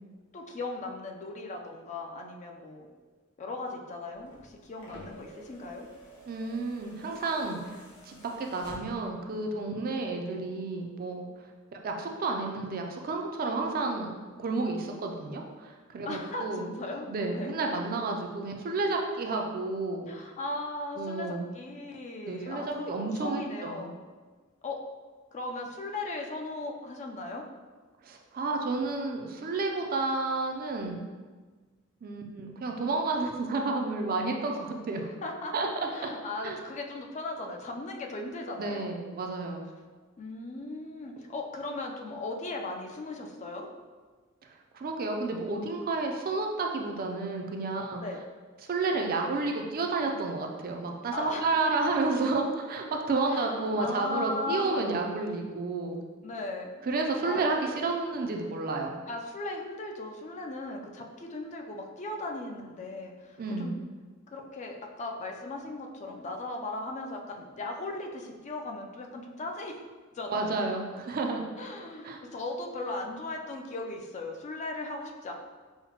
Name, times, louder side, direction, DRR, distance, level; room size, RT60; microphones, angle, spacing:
voice 1, 0.3-2.9 3.4-5.9 16.1-17.1 17.3-17.5 20.1-23.9 24.6-24.8 25.3-27.4 35.0-35.5 35.9-38.9 40.2-43.7 48.0-48.2 51.1-51.5 53.3-55.0 56.2-56.7 57.2-57.4 59.1-63.7 64.3-69.8 70.1-70.6 71.6-75.3, left 2 dB, 35° left, 2 dB, 0.4 m, -37 dB
sound 1, 4.1-9.2 10.5-10.6, equal, 65° left, 0.9 m, -50 dB
voice 2, 6.3-11.3 11.7-14.1 14.4-16.7 17.1-20.1 21.0-21.5 22.2-23.9 28.0-31.0 32.0-35.1 35.5-35.9 36.4-36.6 38.6-39.6 44.7-48.0 48.7-56.0 56.8-59.0 63.4-63.8 70.3-71.4 72.0-72.2, right 3 dB, 45° right, 2 dB, 0.4 m, -31 dB
5.6 x 2.1 x 2.9 m, 1.4 s
head